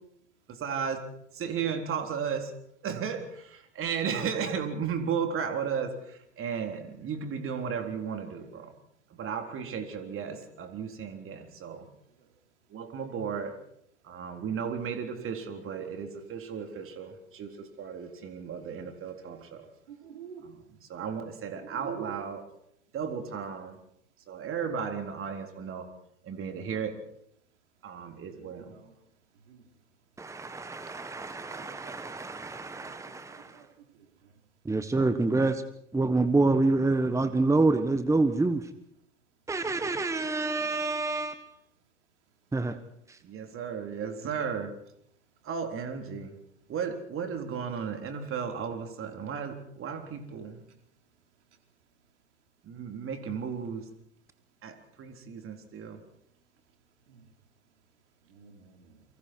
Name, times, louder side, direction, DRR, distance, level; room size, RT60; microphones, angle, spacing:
voice 1, 0.5-1.0 1.3-2.5 2.8-8.7 9.1-11.9 12.7-13.5 14.0-19.7 20.4-20.6 20.9-22.4 22.9-23.8 24.3-25.9 26.2-27.0 27.8-28.7 43.2-44.7 45.4-46.3 46.7-50.6 52.6-53.8 54.6-56.0, right 6 dB, 35° right, 5 dB, 4.0 m, -34 dB
voice 2, 19.9-20.5 28.3-28.9 29.5-29.6 31.4-32.0 32.7-33.7 40.2-41.0 57.1-57.2 58.3-58.9, right 7 dB, 70° right, 4 dB, 4.5 m, -51 dB
voice 3, 30.2-33.6 34.6-35.6 35.9-38.6 39.5-41.4 42.5-42.8, right 3 dB, 10° right, 11 dB, 1.4 m, -27 dB
30.0 x 24.5 x 4.7 m, 0.74 s
figure-of-eight pair, 80°, 36 cm